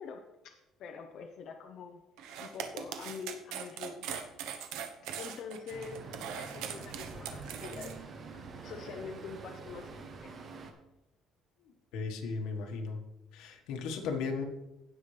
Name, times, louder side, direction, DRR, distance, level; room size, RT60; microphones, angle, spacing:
voice 1, 0.0-2.0 2.4-4.2 5.2-10.4, left 6 dB, 50° left, 3 dB, 0.8 m, -45 dB
sound 1, 2.2-7.9, right 8 dB, 90° right, 1.0 m, -41 dB
Traffic noise roadway noise, 5.7-10.7, right 4 dB, 35° right, 1.0 m, -46 dB
voice 2, 11.9-13.0 13.3-14.4, left 4 dB, 80° left, 4 dB, 1.5 m, -35 dB
16.5 x 5.8 x 3.3 m, 0.94 s
cardioid pair, 170°, 0 cm